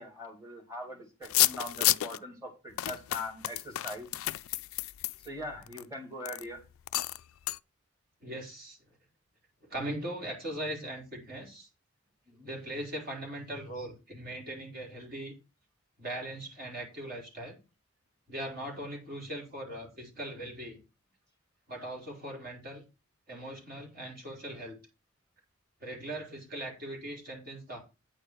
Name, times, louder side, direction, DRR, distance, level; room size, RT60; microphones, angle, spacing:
voice 1, 0.0-4.1 5.2-6.6 12.3-12.5, left 1 dB, 15° right, 2.8 m, -41 dB
sound 1, 1.2-2.2 2.8-5.8 6.2-6.4 6.9-7.2 7.5-7.6, left 17 dB, 80° left, 0.4 m, -30 dB
voice 2, 8.2-8.8 9.7-11.7 12.4-15.3 16.0-17.6 18.3-20.8 21.7-22.8 23.3-24.8 25.8-27.8, right 1 dB, 45° right, 3.4 m, -40 dB
9.2 x 4.6 x 6.4 m
head